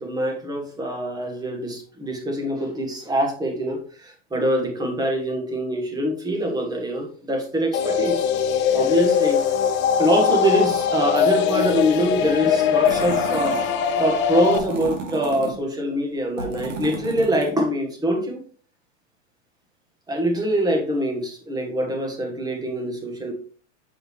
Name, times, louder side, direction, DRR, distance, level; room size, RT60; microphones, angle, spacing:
voice 1, 0.0-8.2 8.7-9.4 10.0-13.6 14.0-18.4 20.1-23.3, right 1 dB, 10° right, 3 dB, 1.3 m, -24 dB
sound 1, 7.7-14.6, left 8 dB, 30° left, 0.7 m, -21 dB
sound 2, 12.8-13.7 14.4-15.5 16.4-17.6, right 4 dB, 85° right, 2.3 m, -32 dB
7.2 x 5.1 x 3.0 m, 0.42 s
supercardioid pair, 140°, 37 cm